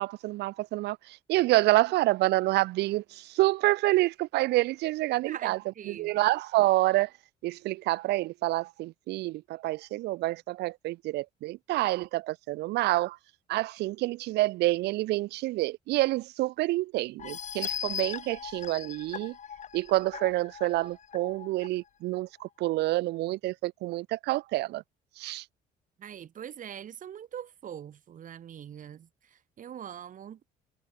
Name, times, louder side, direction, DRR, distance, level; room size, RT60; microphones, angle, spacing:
voice 1, 0.0-5.6 5.9-7.1 7.4-13.2 13.5-19.3 19.7-24.8 25.2-25.4, right 18 dB, 80° right, 1.2 m, -28 dB
voice 2, 5.3-6.1 26.0-30.4, right 9 dB, 50° right, 3.6 m, -43 dB
sound 1, 17.2-21.7 22.2-22.3 22.6-22.7, left 8 dB, 45° left, 7.4 m, -39 dB
cardioid pair, 110°, 17 cm